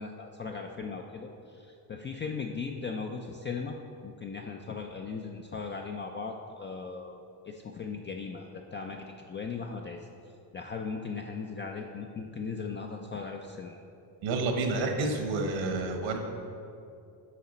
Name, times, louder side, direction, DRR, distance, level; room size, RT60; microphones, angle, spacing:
voice 1, 0.0-3.8 4.0-7.1 7.5-10.0 10.5-13.8, left 5 dB, 30° left, 2 dB, 0.3 m, -38 dB
voice 2, 14.2-16.2, right 3 dB, 75° right, 4 dB, 1.1 m, -29 dB
8.3 x 4.8 x 4.2 m, 2.6 s
cardioid pair, 105°, 45 cm